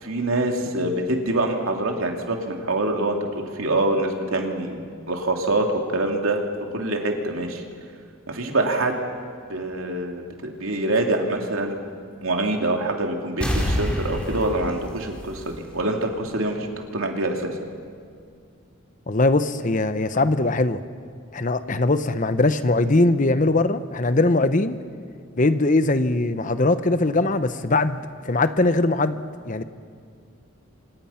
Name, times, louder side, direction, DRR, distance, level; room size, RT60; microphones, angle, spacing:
voice 1, 0.0-5.7 5.9-6.4 6.7-7.6 8.3-9.0 9.5-11.8 12.2-16.7 16.9-17.5, right 2 dB, 75° right, 2 dB, 2.9 m, -25 dB
sound 1, 13.4-16.0 16.4-16.5, equal, 5° left, 4.0 m, -27 dB
voice 2, 19.1-20.8 21.3-24.8 25.4-29.2 29.4-29.6, left 2 dB, 40° left, 12 dB, 0.9 m, -21 dB
29.0 x 26.0 x 5.8 m, 2.2 s
head